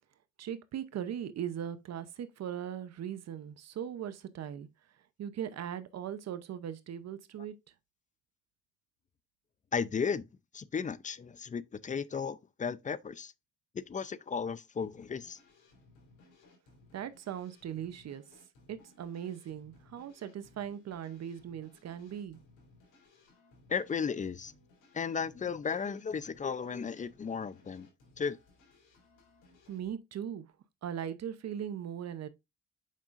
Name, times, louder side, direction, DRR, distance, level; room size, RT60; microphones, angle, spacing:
voice 1, 0.4-4.7 5.2-7.6 16.9-18.4 18.7-22.4 29.7-30.5 30.8-32.3, right 9 dB, 60° right, 0.8 m, -39 dB
voice 2, 9.7-10.3 10.5-13.3 13.7-15.4 23.7-24.5 24.9-27.9 28.2-28.4, left 6 dB, 25° left, 0.5 m, -35 dB
sound 1, 14.8-29.9, left 2 dB, 90° left, 3.5 m, -62 dB
7.4 x 5.3 x 2.5 m
cardioid pair, 90°, 30 cm